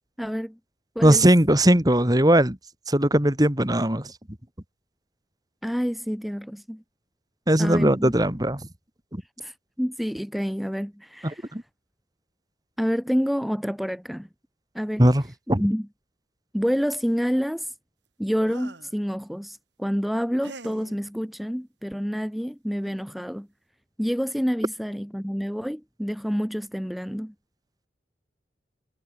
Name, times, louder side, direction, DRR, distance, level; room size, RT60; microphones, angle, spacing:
voice 1, 0.2-0.6 0.9-1.2 5.6-6.8 7.6-8.2 9.4-11.5 12.8-14.3 14.7-15.0 15.6-15.9 16.5-17.7 18.2-23.5 24.0-27.3, equal, ahead, 1.6 m, -28 dB
voice 2, 1.0-2.6 2.9-4.1 7.5-8.6 9.1-9.2 11.2-11.6 15.0-15.2 15.5-15.6, right 1 dB, 20° right, 2.8 m, -19 dB
sound 1, 18.4-19.0 20.4-21.0 22.4-22.5 22.8-23.1, right 2 dB, 80° right, 4.3 m, -44 dB
head